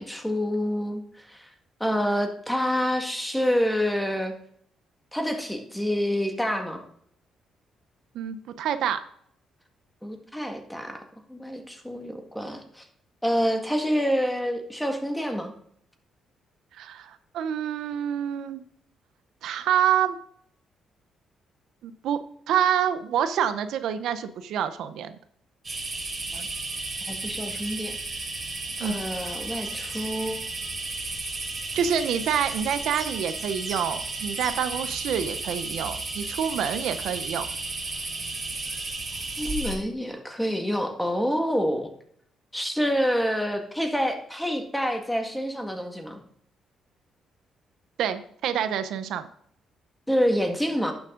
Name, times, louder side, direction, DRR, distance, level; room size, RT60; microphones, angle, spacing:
voice 1, 0.0-1.5 1.8-4.3 5.1-6.8 10.0-11.0 11.3-12.8 13.2-15.5 26.3-26.5 27.1-28.0 28.8-30.4 39.4-41.9 42.5-46.2 50.1-50.9, equal, 5° left, 5 dB, 1.9 m, -27 dB
voice 2, 8.1-9.0 16.7-18.6 19.4-20.2 21.8-22.2 22.5-25.1 28.8-29.0 31.7-37.5 48.0-49.3, right 9 dB, 80° right, 11 dB, 0.8 m, -27 dB
sound 1, 25.6-39.8, right 3 dB, 25° right, 3.2 m, -33 dB
11.5 x 7.2 x 3.8 m, 0.65 s
cardioid pair, 90°, 0 cm